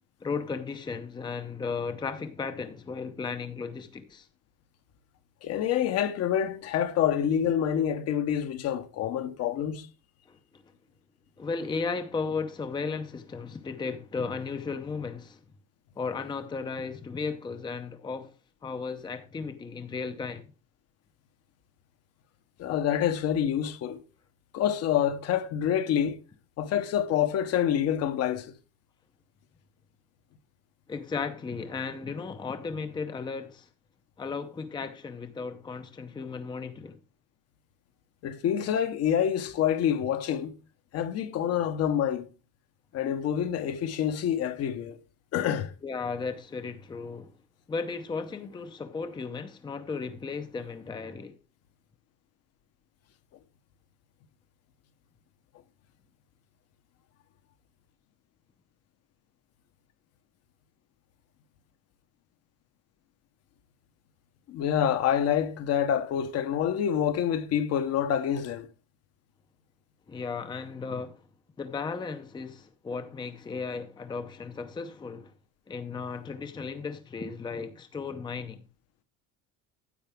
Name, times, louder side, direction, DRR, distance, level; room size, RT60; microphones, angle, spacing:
voice 1, 0.2-4.3 10.3-10.4 11.4-15.4 16.0-18.3 18.6-20.5 30.9-33.7 34.2-37.0 45.8-47.3 47.7-51.4 70.1-71.2 71.6-75.3 75.7-78.6, left 4 dB, 15° left, 0.6 m, -35 dB
voice 2, 5.4-9.9 22.6-24.0 24.5-26.2 26.6-28.5 38.2-40.5 40.9-42.3 42.9-45.0 45.3-45.7 64.5-68.7, left 9 dB, 55° left, 1.1 m, -27 dB
10.0 x 8.0 x 3.5 m
cardioid pair, 150°, 31 cm